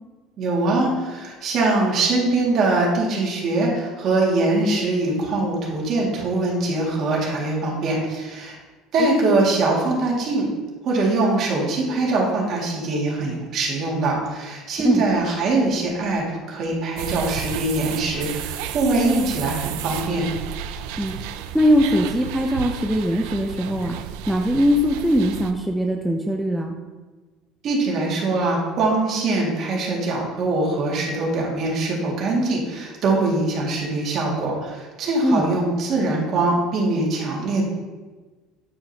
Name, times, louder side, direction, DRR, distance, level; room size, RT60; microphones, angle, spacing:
voice 1, 0.4-8.5 8.9-10.5 10.8-20.3 27.6-37.6, right 2 dB, 50° right, -3 dB, 2.0 m, -22 dB
voice 2, 9.0-9.3 14.8-15.0 21.0-21.2 21.5-24.0 24.3-26.7 35.2-35.4, equal, 5° right, 0 dB, 0.5 m, -21 dB
sound 1, 17.0-25.5, right 10 dB, 80° right, 0.4 m, -32 dB
8.7 x 4.9 x 2.8 m, 1.3 s
cardioid pair, 120°, 0 cm